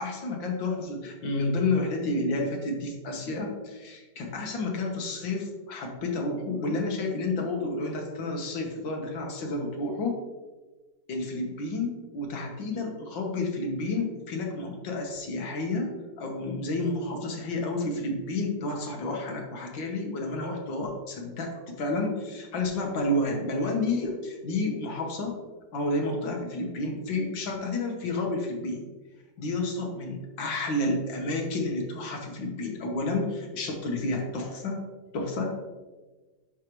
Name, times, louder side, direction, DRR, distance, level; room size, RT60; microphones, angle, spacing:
voice 1, 0.0-10.2 11.1-15.9 16.2-25.3 25.7-28.9 29.4-34.8 35.1-35.5, left 2 dB, 70° left, 2 dB, 1.9 m, -30 dB
11.0 x 4.8 x 3.1 m, 1.3 s
omnidirectional pair, 2.2 m